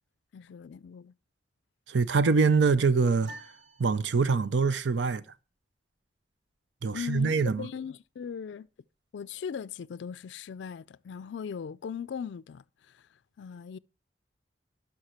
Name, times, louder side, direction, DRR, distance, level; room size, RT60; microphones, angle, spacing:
voice 1, 0.3-1.1 6.9-8.7 9.1-13.1 13.4-13.8, left 7 dB, 85° left, 0.4 m, -39 dB
voice 2, 1.9-3.3 3.8-5.2 6.8-7.7, right 4 dB, 90° right, 0.6 m, -24 dB
sound 1, 3.2-4.7, right 2 dB, 70° right, 2.6 m, -49 dB
11.5 x 5.8 x 4.3 m
head